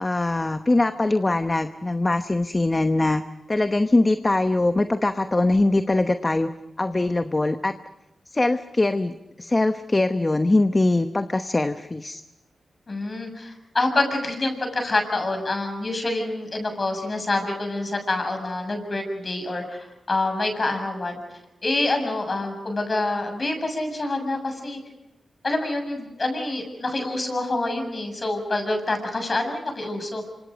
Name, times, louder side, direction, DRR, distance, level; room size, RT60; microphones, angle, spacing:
voice 1, 0.0-3.2 3.5-6.5 6.8-7.8 8.3-12.2, left 2 dB, 30° left, 9 dB, 1.0 m, -22 dB
voice 2, 12.9-21.2 21.6-24.8 25.4-30.2, left 2 dB, 45° left, 5 dB, 7.1 m, -26 dB
26.5 x 26.0 x 5.2 m, 0.98 s
cardioid pair, 50°, 0 cm